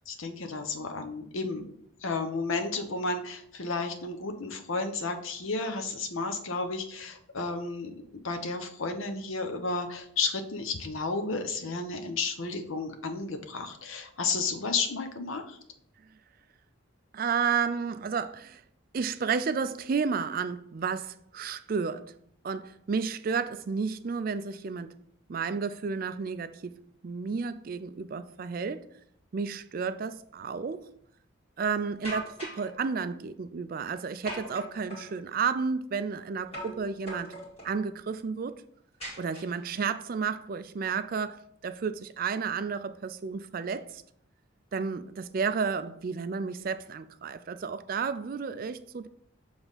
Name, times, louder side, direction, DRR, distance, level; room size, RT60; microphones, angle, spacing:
voice 1, 0.0-1.7 2.0-7.9 8.2-15.6, left 3 dB, 75° left, 0.8 m, -32 dB
voice 2, 17.1-18.6 18.9-22.1 22.4-25.0 25.3-28.9 29.3-30.9 31.6-37.4 37.6-38.6 39.2-44.0 44.7-49.1, right 5 dB, 45° right, 0.3 m, -32 dB
sound 1, 32.0-32.7 34.3-35.1 36.5-36.8 37.1-37.7 39.0-39.8, right 1 dB, 30° left, 2.0 m, -40 dB
7.1 x 3.4 x 4.0 m
head